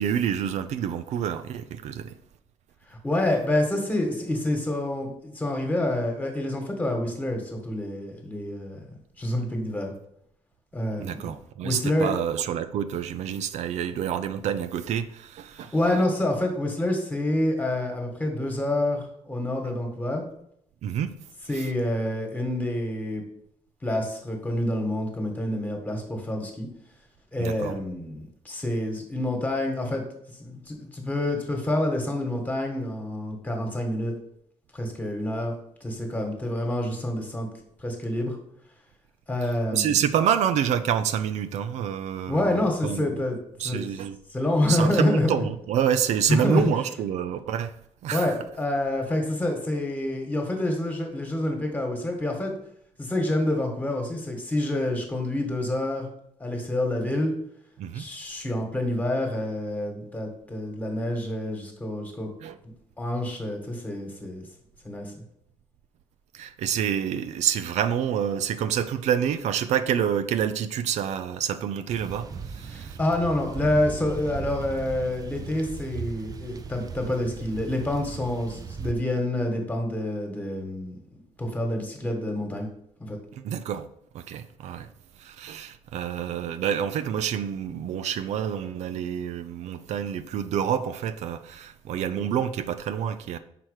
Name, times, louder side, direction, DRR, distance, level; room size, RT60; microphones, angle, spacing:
voice 1, 0.0-2.1 11.0-15.7 20.8-21.1 21.5-21.7 27.4-27.8 39.7-43.1 43.6-44.2 44.7-47.7 48.0-48.4 57.8-58.0 62.4-62.6 66.3-73.0 83.4-83.9 84.1-84.9 85.2-93.4, right 9 dB, 85° right, 0.5 m, -28 dB
voice 2, 2.9-8.8 9.2-9.9 10.7-11.3 11.6-12.1 15.6-20.2 21.5-23.2 23.8-26.7 27.3-30.0 30.4-34.1 34.7-35.5 35.8-37.5 37.8-38.4 39.3-40.0 42.3-43.3 43.6-43.8 44.3-45.3 46.3-46.6 48.1-52.5 53.0-56.1 56.4-57.3 57.9-62.3 63.0-64.4 64.8-65.1 72.7-80.9 81.4-82.7 83.1-83.2, left 1 dB, 15° left, 1.5 m, -27 dB
sound 1, 71.9-78.9, right 5 dB, 35° right, 0.5 m, -37 dB
5.9 x 4.7 x 6.5 m
cardioid pair, 160°, 11 cm